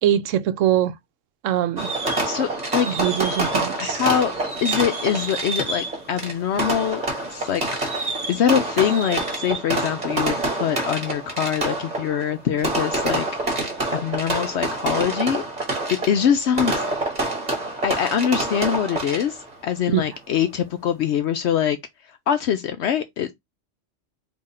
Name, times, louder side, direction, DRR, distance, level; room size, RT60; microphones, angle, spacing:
voice 1, 0.0-0.9 1.4-1.9 2.9-4.0 19.9-20.0, right 11 dB, 85° right, 1.0 m, -22 dB
Fireworks, 1.8-19.5, right 2 dB, 35° right, 1.7 m, -27 dB
voice 2, 2.2-2.9 3.8-4.3 4.6-7.0 7.3-15.4 16.1-17.2 17.8-21.8 22.3-23.3, left 9 dB, 70° left, 0.8 m, -24 dB
3.7 x 2.8 x 4.2 m
omnidirectional pair, 1.3 m